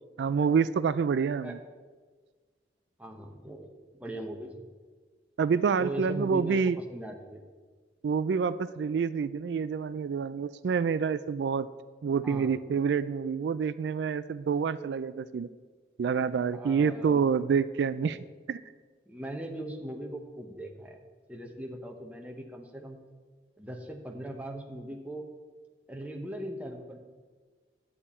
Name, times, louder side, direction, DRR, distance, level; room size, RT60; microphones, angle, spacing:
voice 1, 0.2-1.6 5.4-6.8 8.0-11.7 12.0-15.5 16.0-18.2 18.5-18.6, right 6 dB, 80° right, 15 dB, 0.3 m, -27 dB
voice 2, 3.0-3.7 3.9-4.7 5.8-7.4 12.2-12.6 16.5-17.2 17.9-18.1 19.1-21.0 21.3-23.0 23.6-25.3 25.9-27.0, right 1 dB, 10° right, 2 dB, 0.9 m, -39 dB
11.0 x 8.6 x 4.3 m, 1.4 s
head